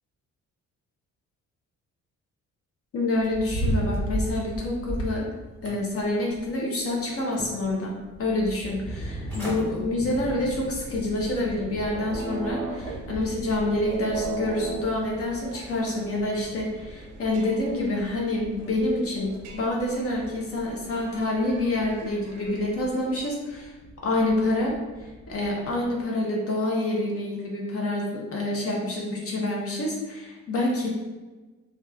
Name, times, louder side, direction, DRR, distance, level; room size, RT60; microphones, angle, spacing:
voice 1, 2.9-5.3 5.6-23.7 24.0-24.7 25.0-30.9, left 2 dB, 50° left, -2 dB, 0.6 m, -27 dB
sound 1, 3.2-5.2 5.7-6.5 6.9-7.7 8.1-8.2 9.0-9.1 9.3-9.6 10.1-10.3 10.8-10.9, right 1 dB, 5° left, 1.2 m, -31 dB
sound 2, 8.0-26.0, right 1 dB, 15° right, 0.4 m, -42 dB
sound 3, 11.9-23.2, right 4 dB, 80° right, 0.5 m, -40 dB
2.8 x 2.2 x 2.3 m, 1.3 s
cardioid pair, 90°, 30 cm